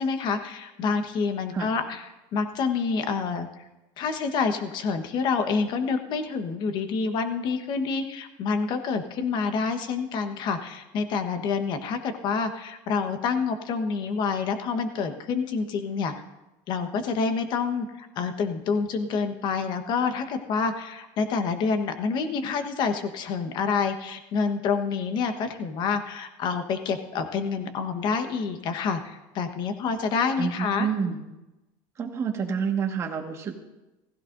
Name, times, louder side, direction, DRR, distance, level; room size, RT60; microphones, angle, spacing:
voice 1, 0.0-2.0 2.3-3.5 4.0-16.1 16.7-30.9, left 5 dB, 45° left, 8 dB, 1.2 m, -27 dB
voice 2, 30.4-31.2 32.0-33.6, right 6 dB, 25° right, 2 dB, 1.6 m, -28 dB
16.0 x 15.5 x 2.6 m, 1.0 s
cardioid pair, 160°, 11 cm